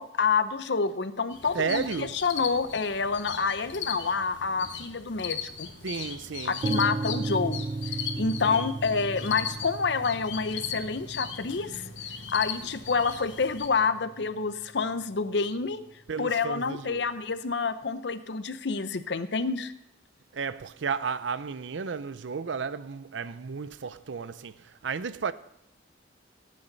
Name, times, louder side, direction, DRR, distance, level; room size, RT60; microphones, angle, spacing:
voice 1, 0.0-5.7 6.5-7.7 8.2-11.9 12.3-15.8 16.2-19.7, left 5 dB, 70° left, 0.7 m, -28 dB
sound 1, 1.3-13.7, left 7 dB, 85° left, 1.2 m, -38 dB
voice 2, 1.5-2.2 5.8-6.6 8.4-8.7 16.1-17.0 20.3-25.3, right 5 dB, 85° right, 0.5 m, -33 dB
sound 2, 6.6-14.5, right 3 dB, 30° right, 0.4 m, -36 dB
17.0 x 8.6 x 4.0 m
head